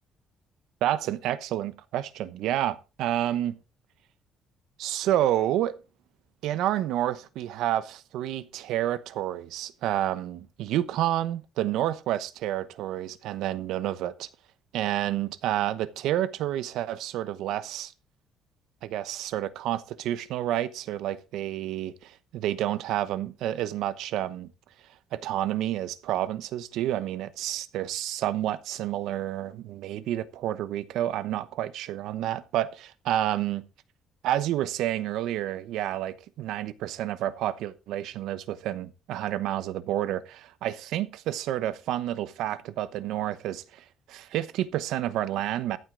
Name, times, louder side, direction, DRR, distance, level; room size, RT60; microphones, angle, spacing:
voice 1, 0.8-3.6 4.8-5.8 6.4-14.3 14.7-17.9 18.8-24.5 25.1-33.7 34.2-45.8, right 12 dB, 80° right, 1.0 m, -29 dB
14.0 x 8.0 x 3.9 m
cardioid pair, 160°, 0 cm